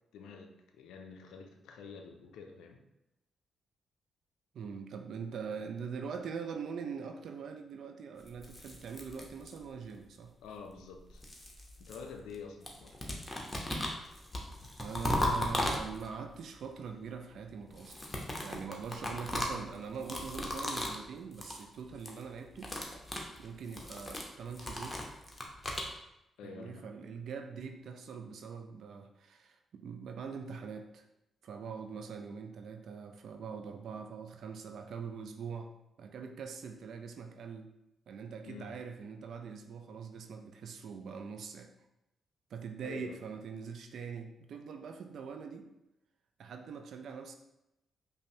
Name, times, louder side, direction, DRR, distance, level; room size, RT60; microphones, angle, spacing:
voice 1, 0.1-2.8 10.4-11.2 11.8-13.0 26.4-26.9 38.5-38.8 42.8-43.2, left 5 dB, 75° left, 4 dB, 0.4 m, -48 dB
voice 2, 4.5-10.3 14.8-18.0 18.4-22.7 23.4-25.0 26.4-31.0 31.4-35.7 36.0-37.7 38.1-41.7 42.5-45.7 46.4-47.4, right 6 dB, 65° right, 6 dB, 0.3 m, -43 dB
sound 1, 8.3-9.8 10.8-12.4 12.6-16.3 17.7-21.0 21.3-21.6 21.9-22.2 22.5-25.9, left 1 dB, 20° left, 0.9 m, -37 dB
5.2 x 2.1 x 2.8 m, 0.88 s
hypercardioid pair, 40°, 0 cm